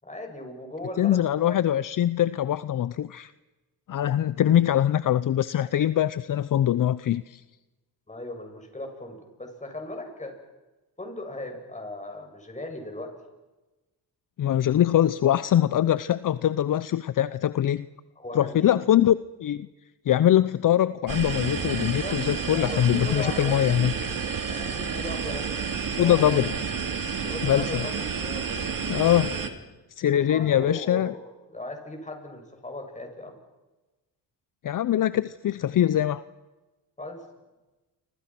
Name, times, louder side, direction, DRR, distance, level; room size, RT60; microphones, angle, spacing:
voice 1, 0.0-1.5 8.1-10.4 11.0-13.1 18.2-18.7 21.8-23.6 24.5-26.4 27.2-28.4 30.1-33.4 37.0-37.3, left 1 dB, 20° left, 3 dB, 7.5 m, -38 dB
voice 2, 1.0-3.3 3.9-7.4 14.4-17.9 18.3-19.7 20.1-23.9 26.0-26.5 27.4-27.8 28.9-29.3 30.0-31.1 34.6-36.2, left 11 dB, 55° left, 16 dB, 0.8 m, -23 dB
sound 1, 21.1-29.5, right 6 dB, 60° right, 3.0 m, -30 dB
29.5 x 26.0 x 6.1 m, 1.1 s
cardioid pair, 85°, 38 cm